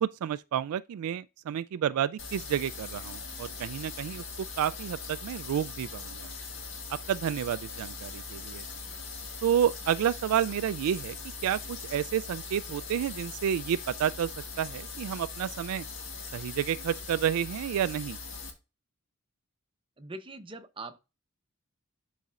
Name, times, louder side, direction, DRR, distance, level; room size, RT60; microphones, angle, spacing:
voice 1, 0.0-4.2 4.6-6.3 6.9-8.6 9.4-11.2 11.4-14.3 14.6-15.8 16.3-18.2, right 9 dB, 75° right, 0.3 m, -30 dB
sound 1, 2.2-18.5, left 4 dB, 60° left, 1.9 m, -41 dB
voice 2, 20.0-21.0, right 2 dB, 25° right, 0.7 m, -42 dB
12.0 x 4.1 x 2.4 m
head